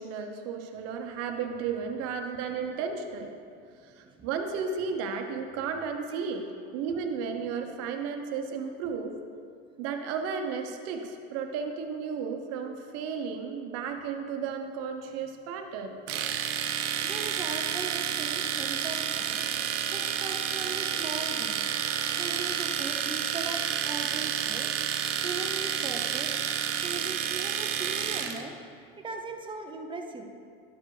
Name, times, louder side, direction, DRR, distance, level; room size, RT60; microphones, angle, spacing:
voice 1, 0.0-3.3 3.8-6.5 6.7-9.2 9.8-16.0 24.6-24.7, right 6 dB, 50° right, 5 dB, 1.0 m, -34 dB
voice 2, 3.5-4.6 6.1-6.5 17.0-19.4 19.9-21.6 22.2-24.7 25.2-26.3 26.8-28.6 29.0-30.2, right 3 dB, 15° right, 3 dB, 0.7 m, -39 dB
Domestic sounds home sounds, 16.1-28.4, right 9 dB, 75° right, 0.8 m, -30 dB
12.0 x 4.6 x 4.9 m, 2.4 s
supercardioid pair, 135°, 31 cm